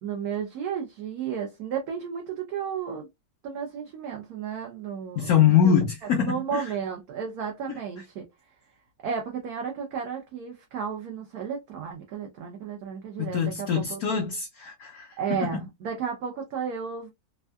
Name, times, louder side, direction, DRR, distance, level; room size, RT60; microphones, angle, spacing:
voice 1, 0.0-3.1 3.4-5.7 6.2-8.3 9.0-14.0 15.2-17.1, right 7 dB, 65° right, 1.0 m, -33 dB
voice 2, 5.2-6.7 13.2-15.7, left 8 dB, 70° left, 0.9 m, -24 dB
3.5 x 2.2 x 2.2 m
omnidirectional pair, 2.1 m